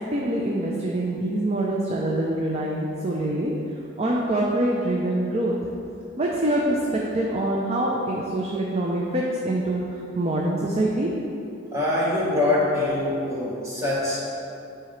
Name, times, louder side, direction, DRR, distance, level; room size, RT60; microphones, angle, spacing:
voice 1, 0.1-3.5 4.0-5.5 6.2-11.1, right 1 dB, 30° right, -2 dB, 0.5 m, -25 dB
voice 2, 11.7-14.2, left 2 dB, 15° right, -7 dB, 1.4 m, -24 dB
9.5 x 4.8 x 3.2 m, 2.7 s
head